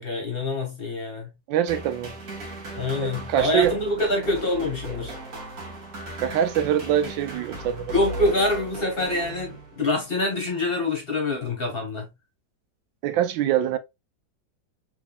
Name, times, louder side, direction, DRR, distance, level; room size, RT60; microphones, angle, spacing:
voice 1, 0.0-1.3 2.8-5.1 7.9-12.1, left 2 dB, 35° left, 1.2 m, -25 dB
voice 2, 1.5-2.2 3.0-3.7 6.2-8.3 13.0-13.8, right 10 dB, 85° right, 1.3 m, -24 dB
sound 1, 1.7-10.0, right 1 dB, 50° right, 1.5 m, -37 dB
3.5 x 3.5 x 2.3 m
omnidirectional pair, 2.0 m